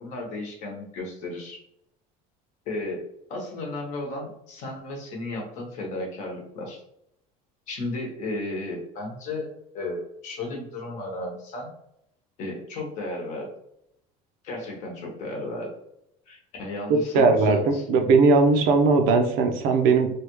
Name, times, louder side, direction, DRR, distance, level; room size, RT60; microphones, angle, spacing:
voice 1, 0.0-1.6 2.7-3.0 3.3-6.8 7.7-9.5 9.7-11.7 12.4-13.5 14.4-15.7 16.3-17.9, left 2 dB, 45° left, 0 dB, 1.0 m, -34 dB
voice 2, 17.1-17.6 17.9-20.1, right 4 dB, 55° right, 5 dB, 0.5 m, -18 dB
3.4 x 2.3 x 3.0 m, 0.76 s
cardioid pair, 180°, 17 cm